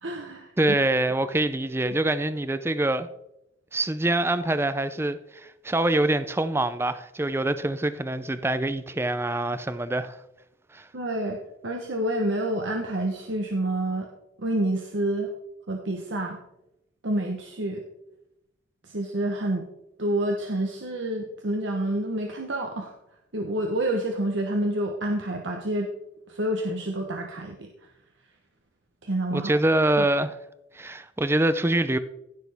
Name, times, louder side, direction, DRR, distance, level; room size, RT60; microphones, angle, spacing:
voice 1, 0.0-0.8 10.9-11.4 11.6-14.1 14.4-15.3 15.7-16.4 17.0-17.8 18.8-19.7 20.0-22.9 23.3-25.9 26.3-27.7 29.0-29.6 30.0-30.1, right 1 dB, 80° right, 1.1 m, -28 dB
voice 2, 0.6-3.1 3.7-10.2 10.7-10.9 29.3-30.4 30.7-32.0, right 1 dB, 15° right, 0.4 m, -25 dB
16.0 x 6.5 x 3.5 m
head